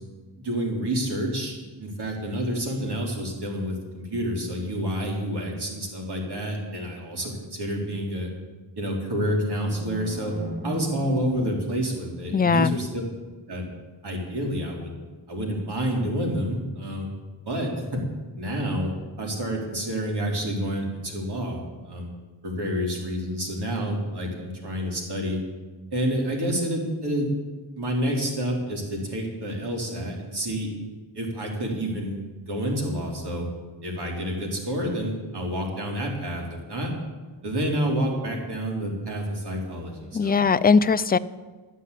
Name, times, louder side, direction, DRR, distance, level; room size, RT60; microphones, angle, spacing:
voice 1, 0.4-8.3 8.8-10.4 10.6-13.0 13.5-13.6 14.0-14.9 15.3-17.1 17.4-18.0 18.4-18.9 19.2-21.6 21.8-22.1 22.4-25.4 25.9-27.3 27.8-30.7 31.1-32.2 32.5-33.5 33.8-36.9 37.4-40.4, equal, 60° right, 0 dB, 3.6 m, -28 dB
sound 1, 9.5-12.6, right 1 dB, 20° right, 1.8 m, -38 dB
voice 2, 12.3-12.8 40.1-41.2, left 5 dB, 20° left, 14 dB, 0.4 m, -20 dB
12.0 x 9.2 x 8.3 m, 1.3 s
cardioid pair, 85°, 45 cm